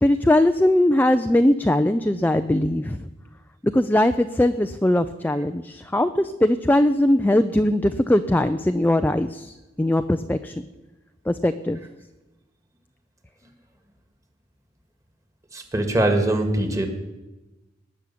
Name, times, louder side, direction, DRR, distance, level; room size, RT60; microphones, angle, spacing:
voice 1, 0.0-3.1 3.6-10.7 11.3-11.8, left 1 dB, 10° left, 8 dB, 0.4 m, -20 dB
voice 2, 15.5-16.9, right 1 dB, 20° right, 5 dB, 2.0 m, -22 dB
19.0 x 6.5 x 9.9 m, 1.1 s
head